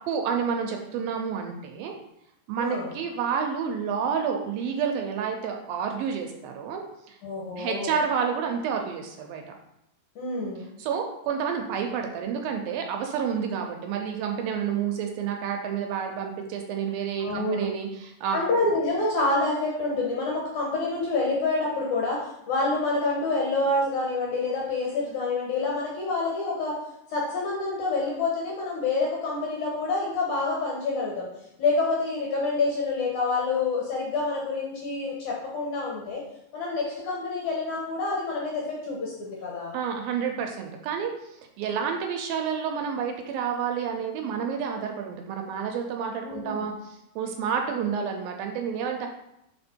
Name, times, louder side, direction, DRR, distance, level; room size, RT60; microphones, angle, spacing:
voice 1, 0.1-1.9 2.5-7.2 7.6-9.4 10.8-18.4 39.7-49.1, right 7 dB, 80° right, 3 dB, 2.2 m, -29 dB
voice 2, 2.6-2.9 7.2-7.9 10.2-10.7 17.2-17.7 18.3-26.8 27.1-31.3 31.6-36.2 36.5-39.7 46.2-46.6, left 3 dB, 70° left, -3 dB, 2.0 m, -27 dB
5.6 x 4.3 x 4.3 m, 0.82 s
omnidirectional pair, 4.4 m